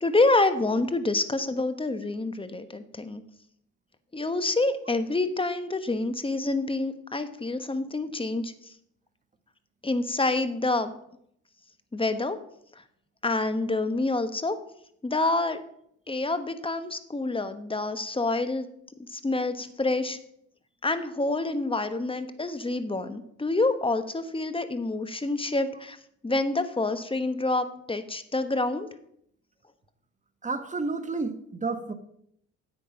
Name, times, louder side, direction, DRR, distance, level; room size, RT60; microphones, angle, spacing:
voice 1, 0.0-3.2 4.1-8.5 9.8-10.9 11.9-12.4 13.2-14.6 15.0-15.6 16.1-18.7 19.1-20.2 20.8-26.0 26.2-28.9, left 2 dB, 15° left, 1.2 m, -27 dB
voice 2, 30.4-31.9, right 3 dB, 25° right, 1.3 m, -31 dB
10.0 x 7.6 x 5.2 m
supercardioid pair, 65°, 31 cm